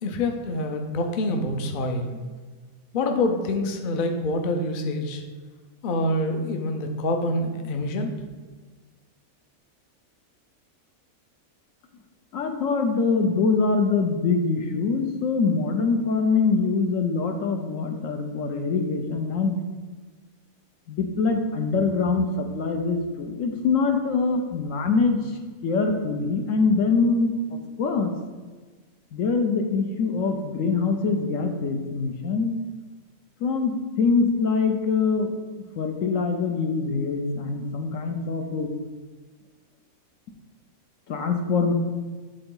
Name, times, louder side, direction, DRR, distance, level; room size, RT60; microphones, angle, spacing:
voice 1, 0.0-2.2 2.9-5.2 5.8-8.1, left 1 dB, 50° left, 4 dB, 0.7 m, -26 dB
voice 2, 12.3-19.6 20.9-25.2 25.6-28.1 29.1-32.5 33.4-35.4 35.8-38.7 41.1-41.7, left 4 dB, 70° left, 5 dB, 1.0 m, -24 dB
8.8 x 3.9 x 3.8 m, 1.4 s
omnidirectional pair, 1.5 m